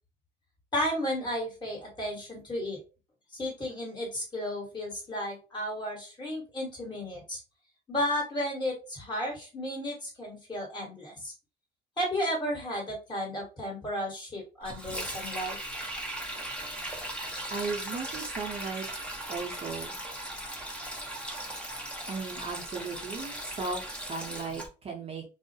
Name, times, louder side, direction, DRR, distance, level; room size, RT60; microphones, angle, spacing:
voice 1, 0.7-2.8 3.3-7.4 7.9-11.3 12.0-15.6, equal, 25° left, -2 dB, 1.3 m, -33 dB
Sink (filling or washing), 14.6-24.7, right 1 dB, 5° left, 0.6 m, -38 dB
voice 2, 17.5-18.8 19.3-19.9 22.1-25.2, right 4 dB, 35° right, 1 dB, 0.6 m, -36 dB
2.3 x 2.0 x 2.6 m, 0.32 s
cardioid pair, 110°, 17 cm